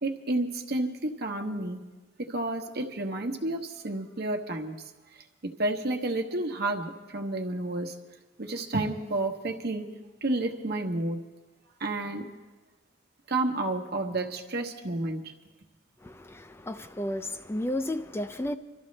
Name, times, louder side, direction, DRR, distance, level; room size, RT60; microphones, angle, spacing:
voice 1, 0.0-1.8 2.2-4.7 5.4-7.9 8.4-9.8 10.2-11.2 11.8-12.2 13.3-15.2, right 2 dB, 60° right, 1.1 m, -30 dB
voice 2, 16.0-18.6, left 1 dB, 15° left, 0.4 m, -33 dB
25.0 x 13.0 x 3.2 m
head